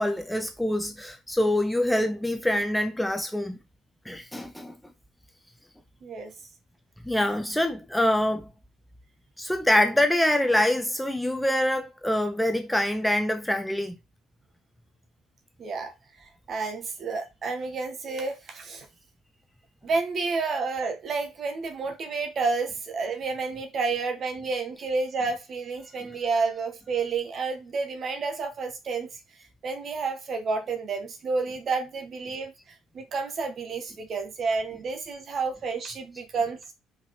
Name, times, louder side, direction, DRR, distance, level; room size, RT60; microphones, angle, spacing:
voice 1, 0.0-3.6 4.1-4.8 7.0-8.5 9.4-14.0 26.0-26.2, left 1 dB, 5° left, 0.7 m, -25 dB
voice 2, 6.0-6.3 15.6-18.9 19.8-29.1 29.6-36.6, right 4 dB, 40° right, 1.5 m, -30 dB
5.2 x 5.1 x 3.7 m
cardioid pair, 130°, 0 cm